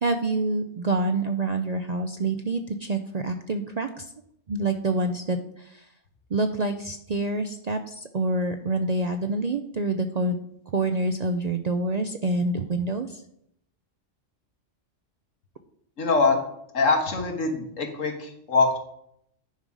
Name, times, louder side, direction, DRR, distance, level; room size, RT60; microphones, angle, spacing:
voice 1, 0.0-4.1 4.5-5.8 6.3-10.4 10.7-13.2, right 2 dB, 50° right, 7 dB, 0.5 m, -27 dB
voice 2, 16.0-16.4 16.7-18.8, left 3 dB, 85° left, 3 dB, 1.8 m, -23 dB
10.0 x 4.8 x 5.4 m, 0.74 s
omnidirectional pair, 1.3 m